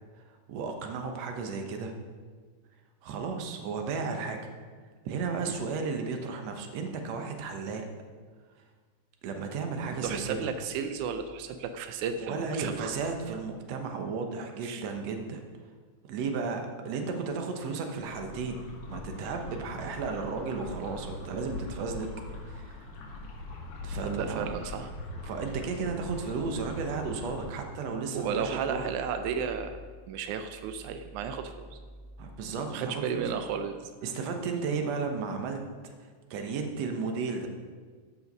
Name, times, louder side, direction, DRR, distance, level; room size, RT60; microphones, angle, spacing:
voice 1, 0.3-1.9 3.0-4.4 5.1-7.9 9.2-10.4 12.2-15.4 16.0-22.9 23.8-24.5 25.3-28.8 32.2-33.3 34.0-35.6 35.8-37.5, right 4 dB, 65° right, 4 dB, 2.1 m, -34 dB
voice 2, 10.0-12.9 14.6-14.8 24.0-24.9 28.1-29.8 30.1-31.8 32.7-33.9, right 6 dB, 90° right, 8 dB, 2.1 m, -33 dB
sound 1, 18.0-27.5, left 2 dB, 85° left, 3.0 m, -41 dB
14.0 x 5.7 x 5.3 m, 1.5 s
omnidirectional pair, 3.4 m